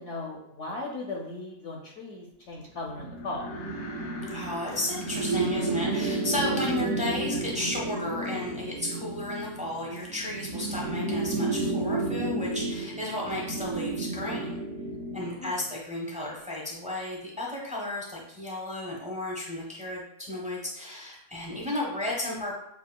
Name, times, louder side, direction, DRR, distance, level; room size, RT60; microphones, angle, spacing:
voice 1, 0.0-3.7 15.2-15.6, left 2 dB, 65° left, -1 dB, 0.8 m, -38 dB
sound 1, 2.9-8.4, left 3 dB, 85° left, 1.3 m, -47 dB
sound 2, 2.9-15.4, right 2 dB, 65° right, 0.7 m, -32 dB
voice 2, 4.3-14.6 15.1-22.5, left 1 dB, 10° right, -3 dB, 0.4 m, -33 dB
7.0 x 2.4 x 2.2 m, 0.82 s
omnidirectional pair, 1.7 m